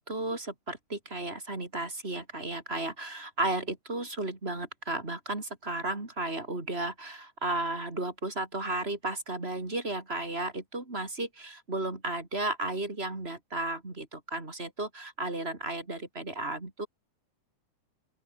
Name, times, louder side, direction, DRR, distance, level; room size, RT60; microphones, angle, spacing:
voice 1, 0.0-16.9, right 2 dB, 20° right, 3.6 m, -34 dB
open air
omnidirectional pair, 3.6 m